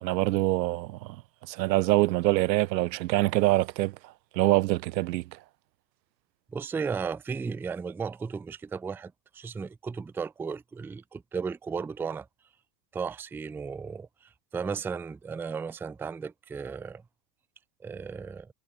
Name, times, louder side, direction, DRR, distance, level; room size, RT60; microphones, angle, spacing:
voice 1, 0.0-1.2 1.5-3.9 4.3-5.2, right 18 dB, 85° right, 1.3 m, -25 dB
voice 2, 6.5-12.3 12.9-17.0 17.8-18.5, right 5 dB, 5° right, 0.5 m, -35 dB
supercardioid pair, 160°, 50 cm